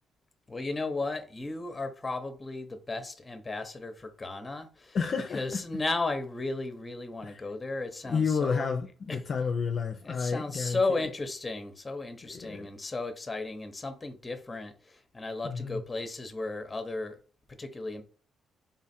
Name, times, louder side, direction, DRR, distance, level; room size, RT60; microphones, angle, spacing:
voice 1, 0.5-8.7 9.1-9.2 10.0-14.7 15.1-17.1 17.6-18.0, left 3 dB, 20° left, 0.8 m, -34 dB
voice 2, 4.9-5.6 7.2-7.4 8.0-11.1 12.2-12.7 15.4-15.8, left 5 dB, 50° left, 0.4 m, -31 dB
3.8 x 2.4 x 4.2 m
cardioid pair, 90°, 0 cm